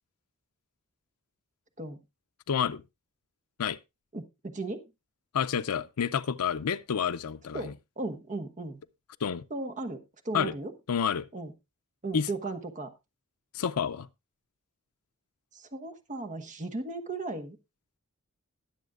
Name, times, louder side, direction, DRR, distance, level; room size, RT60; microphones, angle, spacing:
voice 1, 2.5-2.8 3.6-3.8 5.3-7.7 9.2-9.4 10.3-10.5 10.9-11.3 12.1-12.3 13.5-14.1, left 7 dB, 85° left, 0.5 m, -29 dB
voice 2, 4.1-4.8 7.5-8.8 9.5-10.7 11.3-11.5 12.0-12.9 15.5-17.6, right 2 dB, 35° right, 1.2 m, -36 dB
20.5 x 7.2 x 2.5 m
head